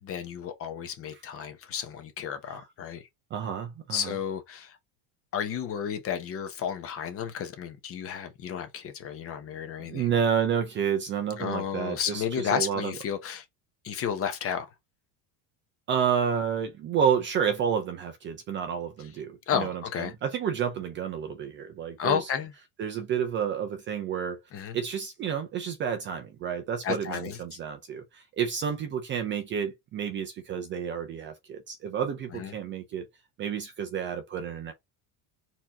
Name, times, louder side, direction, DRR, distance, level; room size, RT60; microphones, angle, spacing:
voice 1, 0.0-3.0 3.9-4.8 5.3-10.1 11.4-13.4 13.8-14.7 19.5-20.1 22.0-22.5 24.5-24.8 26.8-27.4 32.3-32.5, left 8 dB, 30° left, 0.8 m, -32 dB
voice 2, 3.3-4.2 9.8-12.9 15.9-22.3 22.8-24.4 24.7-33.0 33.4-34.7, right 7 dB, 25° right, 0.5 m, -30 dB
4.4 x 2.9 x 3.5 m
cardioid pair, 160°, 46 cm